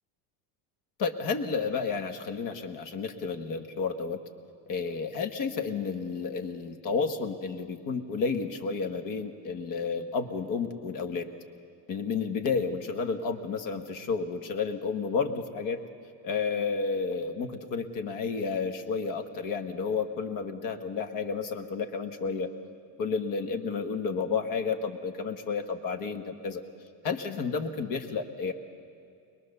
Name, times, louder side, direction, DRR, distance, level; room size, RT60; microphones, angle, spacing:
voice 1, 1.0-4.2 4.7-11.3 11.9-15.8 16.2-22.5 23.0-26.6 27.0-28.5, left 5 dB, 45° left, 7 dB, 1.5 m, -31 dB
22.0 x 21.5 x 6.8 m, 2.4 s
cardioid pair, 140°, 45 cm